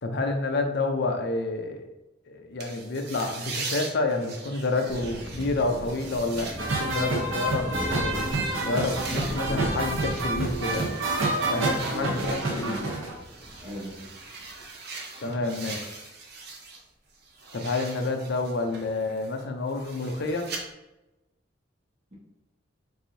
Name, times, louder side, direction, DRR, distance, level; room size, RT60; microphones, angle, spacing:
voice 1, 0.0-1.8 2.3-6.5 6.8-10.9 11.5-12.8 15.2-16.0 17.5-20.5, left 3 dB, 60° left, 4 dB, 0.6 m, -29 dB
sound 1, 2.6-16.8 17.1-20.6, right 4 dB, 55° right, 0.7 m, -41 dB
Thunder, 4.9-14.6, equal, 10° left, 0.9 m, -38 dB
sound 2, 6.6-13.1, right 2 dB, 85° right, 0.8 m, -28 dB
voice 2, 9.1-9.7 11.4-13.0 13.6-14.1, left 1 dB, 40° right, -7 dB, 1.1 m, -37 dB
4.7 x 2.6 x 2.7 m, 0.97 s
head